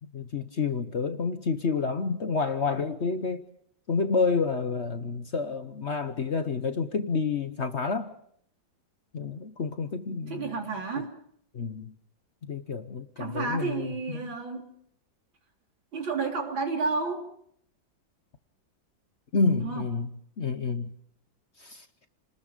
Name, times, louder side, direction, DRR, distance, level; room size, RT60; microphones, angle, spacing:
voice 1, 0.0-3.5 3.9-8.1 9.1-10.7 11.5-11.9 12.4-14.3 19.3-20.1 20.4-21.0 21.6-21.9, left 4 dB, 45° left, 9 dB, 1.1 m, -29 dB
voice 2, 10.3-11.1 13.2-14.7 15.9-17.3 19.6-19.8, right 4 dB, 85° right, 2 dB, 4.1 m, -31 dB
29.5 x 20.0 x 5.1 m, 0.67 s
omnidirectional pair, 2.0 m